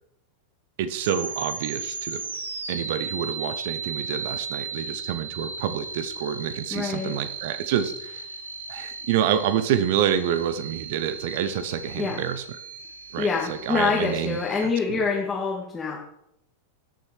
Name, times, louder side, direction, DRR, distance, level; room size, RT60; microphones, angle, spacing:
voice 1, 0.8-2.2 2.7-8.2 8.7-12.4 13.1-15.1, right 9 dB, 50° right, 13 dB, 0.9 m, -28 dB
sound 1, 1.0-14.7, right 4 dB, 75° right, 1.2 m, -36 dB
voice 2, 6.7-7.2 12.0-12.2 13.2-16.0, left 5 dB, 15° left, -3 dB, 1.9 m, -26 dB
16.5 x 6.6 x 4.6 m, 0.80 s
figure-of-eight pair, 90°, 0 cm